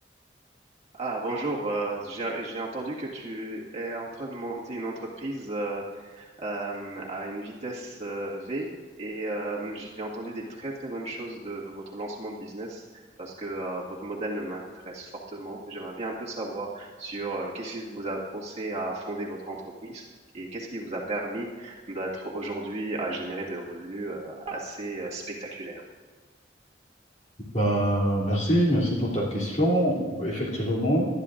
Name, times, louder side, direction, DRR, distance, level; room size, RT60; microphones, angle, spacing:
voice 1, 0.9-5.8 6.1-8.7 9.0-12.8 13.2-19.6 19.8-20.0 20.3-25.8, right 2 dB, 40° right, -4 dB, 1.9 m, -34 dB
voice 2, 27.5-31.1, equal, 40° left, -5 dB, 3.0 m, -24 dB
19.5 x 12.0 x 2.6 m, 1.4 s
head